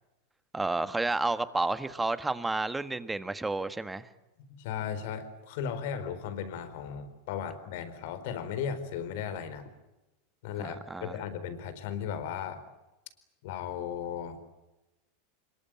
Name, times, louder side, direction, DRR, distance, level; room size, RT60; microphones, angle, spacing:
voice 1, 0.5-4.1 10.6-11.2, right 2 dB, 10° right, 12 dB, 1.6 m, -31 dB
voice 2, 4.5-9.7 10.4-12.6 13.4-14.5, left 8 dB, 65° left, 12 dB, 4.4 m, -36 dB
26.0 x 22.5 x 9.0 m, 1.0 s
hypercardioid pair, 100°, 0 cm